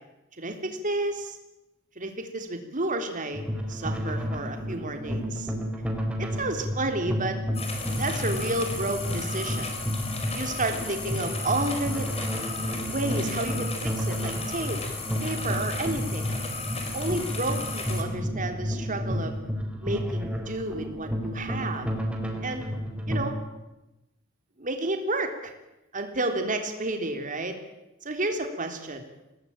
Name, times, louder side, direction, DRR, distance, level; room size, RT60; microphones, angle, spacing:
voice 1, 0.4-1.4 2.0-5.5 6.3-7.4 8.0-9.7 10.3-12.1 12.8-14.8 15.2-16.3 16.9-19.4 19.8-21.9 22.4-22.7 23.1-23.4 24.6-25.5 25.9-27.5 28.0-29.0, right 2 dB, 40° right, 5 dB, 3.5 m, -31 dB
sound 1, 3.3-23.3, equal, 5° right, 4.4 m, -31 dB
sound 2, 7.5-18.0, left 3 dB, 30° left, 4.8 m, -35 dB
27.0 x 18.5 x 9.0 m, 0.98 s
head